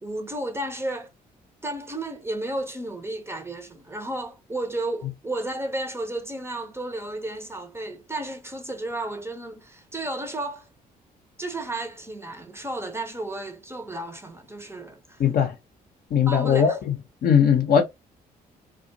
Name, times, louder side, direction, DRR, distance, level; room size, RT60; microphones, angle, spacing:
voice 1, 0.0-1.1 1.6-10.7 11.4-15.2 16.3-16.8, right 2 dB, 10° right, 0.7 m, -33 dB
voice 2, 15.2-15.6 16.1-17.0 17.2-17.8, left 7 dB, 45° left, 0.7 m, -19 dB
2.4 x 2.2 x 2.6 m
figure-of-eight pair, 45°, 21 cm